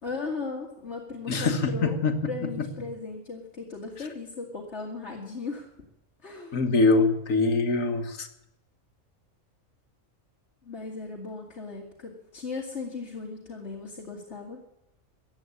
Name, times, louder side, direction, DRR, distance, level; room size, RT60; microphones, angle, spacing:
voice 1, 0.0-5.7 6.2-6.6 10.6-14.6, left 4 dB, 55° left, -2 dB, 2.4 m, -37 dB
voice 2, 1.3-2.2 6.5-8.3, left 3 dB, 75° left, 7 dB, 1.8 m, -23 dB
15.5 x 8.4 x 9.8 m, 0.82 s
omnidirectional pair, 1.4 m